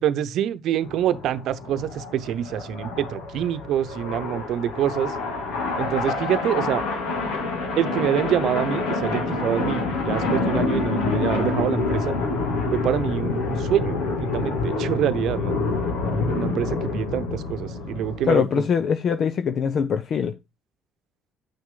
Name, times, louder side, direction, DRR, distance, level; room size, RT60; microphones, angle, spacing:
voice 1, 0.0-5.2 5.8-6.8 7.8-12.1 12.7-15.6 16.3-18.7, right 10 dB, 65° right, 0.8 m, -26 dB
sound 1, 0.8-18.3, left 3 dB, 90° left, 2.4 m, -27 dB
voice 2, 18.3-20.3, left 6 dB, 50° left, 0.6 m, -22 dB
8.5 x 6.3 x 3.8 m
cardioid pair, 95°, 0 cm